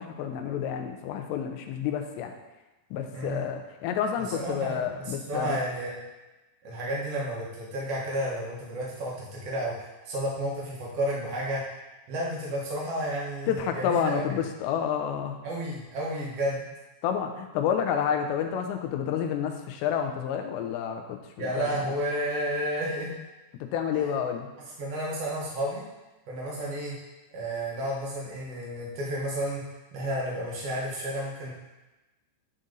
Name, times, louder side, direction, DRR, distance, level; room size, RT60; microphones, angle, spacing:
voice 1, 0.0-2.3 2.9-5.6 13.5-15.4 17.0-22.0 23.5-24.5, left 8 dB, 85° left, 4 dB, 2.9 m, -29 dB
voice 2, 3.1-3.5 4.2-6.0 6.6-11.6 12.1-14.4 15.4-16.7 21.4-23.2 23.9-24.1 24.8-25.8 26.3-26.9 27.3-29.6 29.9-31.5, right 1 dB, 80° right, -5 dB, 1.3 m, -31 dB
11.0 x 4.1 x 3.8 m, 1.1 s
omnidirectional pair, 5.0 m